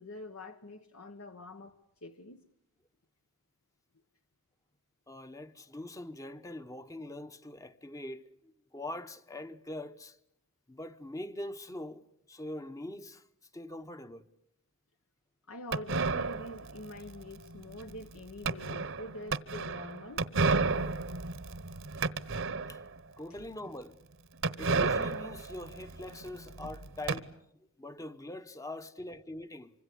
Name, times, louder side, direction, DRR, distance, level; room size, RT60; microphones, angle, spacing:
voice 1, 0.0-2.4 15.5-20.3, left 1 dB, 70° left, 1.1 m, -46 dB
voice 2, 5.1-10.2 10.7-13.2 13.5-14.3 22.7-22.8 23.2-24.0 24.6-27.3 27.8-29.7, left 1 dB, 15° left, 0.9 m, -43 dB
sound 1, 15.7-23.0 23.4-23.5 23.7-23.8 24.4-27.2, right 4 dB, 60° right, 1.1 m, -32 dB
26.0 x 25.0 x 8.3 m
head